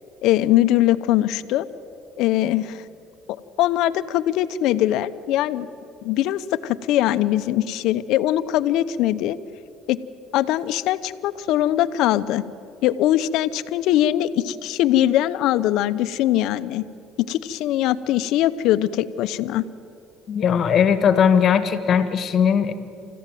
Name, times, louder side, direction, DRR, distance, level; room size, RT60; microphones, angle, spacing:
voice 1, 0.2-1.7 2.2-2.8 3.6-5.7 6.0-9.4 9.9-10.0 10.3-12.4 12.8-16.8 17.2-19.6, left 13 dB, 70° left, 13 dB, 0.9 m, -21 dB
voice 2, 20.3-22.7, left 7 dB, 45° left, 12 dB, 1.7 m, -18 dB
28.5 x 14.5 x 9.2 m, 2.6 s
cardioid pair, 110°, 0 cm